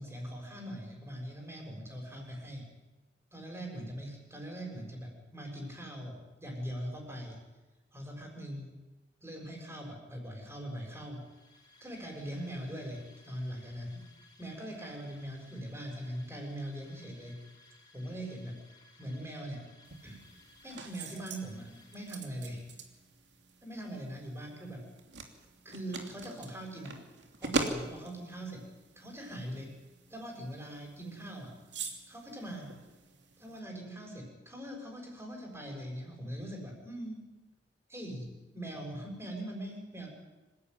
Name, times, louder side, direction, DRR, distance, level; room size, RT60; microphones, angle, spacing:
voice 1, 0.0-2.7 3.3-7.4 7.9-8.7 9.2-11.3 11.8-14.0 14.4-17.4 17.9-18.6 19.0-19.6 20.0-20.2 20.6-22.6 23.6-24.9 25.6-27.0 27.4-29.8 30.1-31.5 32.1-32.7 33.4-37.3 37.9-40.1, right 1 dB, 15° right, 1 dB, 6.3 m, -41 dB
sound 1, 11.0-22.8, left 2 dB, 25° left, 6.1 m, -61 dB
sound 2, 19.8-33.6, right 2 dB, 70° right, 2.9 m, -42 dB
26.0 x 16.0 x 9.6 m, 1.1 s
head